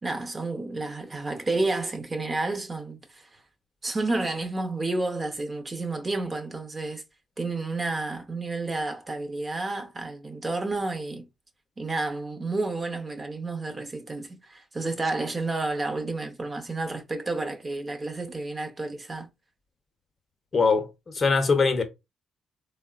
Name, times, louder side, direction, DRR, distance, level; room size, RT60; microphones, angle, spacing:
voice 1, 0.0-3.4 3.8-7.0 7.4-11.3 11.8-19.3, right 2 dB, 30° right, 0.6 m, -30 dB
voice 2, 20.5-21.8, left 4 dB, 35° left, 0.6 m, -22 dB
3.5 x 2.0 x 2.3 m
cardioid pair, 90°, 0 cm